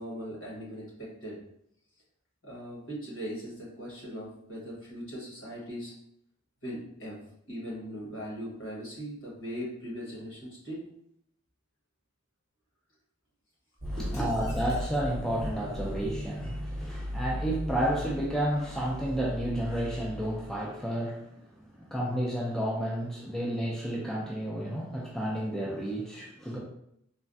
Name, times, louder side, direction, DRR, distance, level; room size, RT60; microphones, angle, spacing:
voice 1, 0.0-1.4 2.4-5.9 6.6-10.9 14.0-14.2, equal, 75° left, -6 dB, 1.4 m, -39 dB
voice 2, 13.8-21.3 21.8-26.6, right 1 dB, ahead, -4 dB, 0.3 m, -31 dB
sound 1, 13.8-20.6, equal, 45° right, 0.7 m, -37 dB
sound 2, 14.1-15.1, left 1 dB, 50° left, 0.9 m, -51 dB
3.3 x 2.1 x 2.5 m, 0.74 s
head